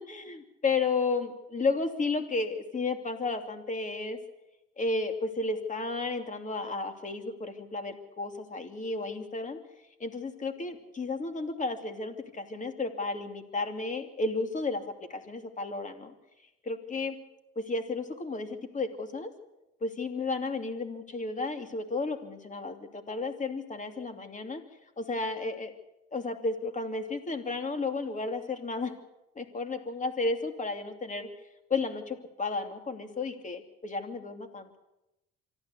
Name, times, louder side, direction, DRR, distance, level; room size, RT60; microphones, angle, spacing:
voice 1, 0.1-4.2 4.8-9.6 10.0-16.1 16.6-17.2 17.6-19.3 19.8-24.6 25.0-25.7 26.1-28.9 29.3-31.3 31.7-34.8, left 3 dB, 25° left, 6 dB, 2.8 m, -33 dB
25.0 x 13.5 x 8.3 m, 0.94 s
cardioid pair, 105°, 29 cm